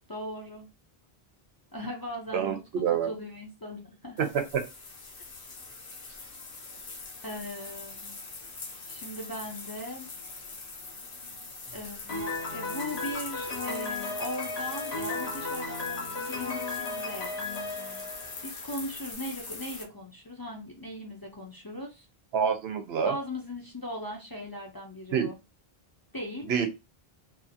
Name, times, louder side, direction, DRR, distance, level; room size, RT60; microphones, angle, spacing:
voice 1, 0.1-0.7 1.7-2.6 3.0-4.3 7.2-8.1 8.9-10.1 11.7-12.2 12.5-18.1 18.4-22.1 23.0-25.4 26.1-26.5, equal, 30° left, -1 dB, 0.5 m, -39 dB
voice 2, 2.3-3.1 4.2-4.6 22.3-23.1 25.1-25.3 26.5-26.7, right 7 dB, 85° right, 6 dB, 0.9 m, -27 dB
sound 1, 4.2-19.8, left 3 dB, 65° left, 0.9 m, -42 dB
Piano, 12.1-18.9, left 3 dB, 80° left, 1.2 m, -35 dB
2.7 x 2.4 x 2.6 m, 0.26 s
omnidirectional pair, 1.0 m